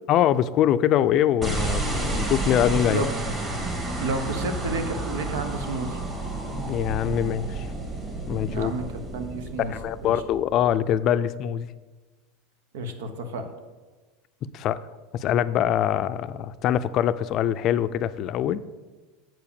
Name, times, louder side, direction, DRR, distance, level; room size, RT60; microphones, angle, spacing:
voice 1, 0.1-3.0 6.5-7.7 8.3-8.7 9.6-11.7 14.5-14.8 15.1-18.6, left 10 dB, 45° left, 14 dB, 0.4 m, -23 dB
sound 1, 1.4-10.8, right 2 dB, 20° right, 2.0 m, -31 dB
voice 2, 4.0-6.0 8.5-9.7 10.0-10.2 12.7-13.5, right 3 dB, 85° right, 8 dB, 1.1 m, -31 dB
7.5 x 4.9 x 7.0 m, 1.3 s
supercardioid pair, 130°, 0 cm